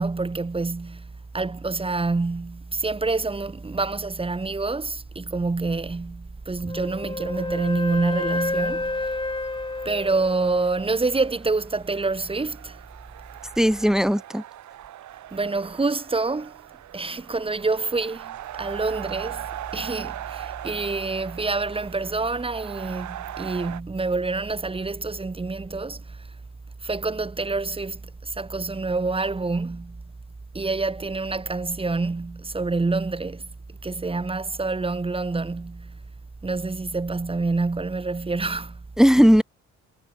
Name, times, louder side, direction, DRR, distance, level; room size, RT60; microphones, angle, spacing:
voice 1, 0.0-9.2 9.8-12.8 15.3-16.6 16.9-19.5 19.7-26.3 26.8-30.0 30.5-36.0 36.4-38.8, right 3 dB, 20° right, 1.7 m, -27 dB
Wind instrument woodwind instrument, 6.7-10.9, left 3 dB, 15° left, 1.7 m, -30 dB
sound 1, 7.3-23.8, right 12 dB, 70° right, 1.6 m, -40 dB
voice 2, 13.6-14.4 39.0-39.4, equal, ahead, 0.8 m, -17 dB
cardioid pair, 90°, 30 cm